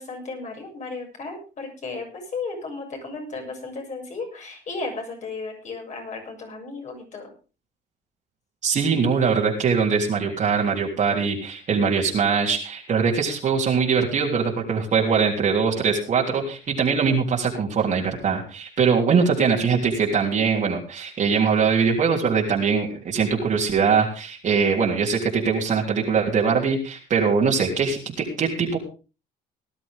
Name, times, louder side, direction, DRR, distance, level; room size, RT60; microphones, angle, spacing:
voice 1, 0.0-7.3, left 3 dB, 45° left, 2 dB, 7.0 m, -34 dB
voice 2, 8.6-28.8, right 5 dB, 45° right, -2 dB, 3.4 m, -22 dB
18.5 x 12.0 x 3.7 m, 0.34 s
cardioid pair, 110°, 17 cm